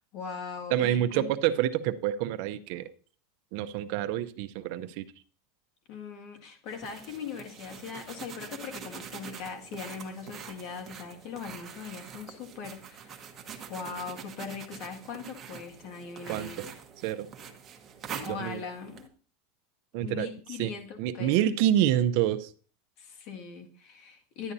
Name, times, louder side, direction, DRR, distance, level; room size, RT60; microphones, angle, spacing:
voice 1, 0.0-1.3 5.9-13.2 13.7-16.7 18.2-19.1 20.0-21.4 23.0-24.5, left 6 dB, 50° left, 4 dB, 2.0 m, -40 dB
voice 2, 0.7-2.8 3.5-5.0 16.3-16.5 17.0-17.3 18.3-18.6 19.9-20.3 20.6-20.7 21.0-22.5, right 12 dB, 55° right, 9 dB, 0.6 m, -27 dB
sound 1, 6.7-19.1, right 7 dB, 25° right, 1.0 m, -45 dB
11.0 x 9.8 x 2.7 m, 0.41 s
supercardioid pair, 155°, 0 cm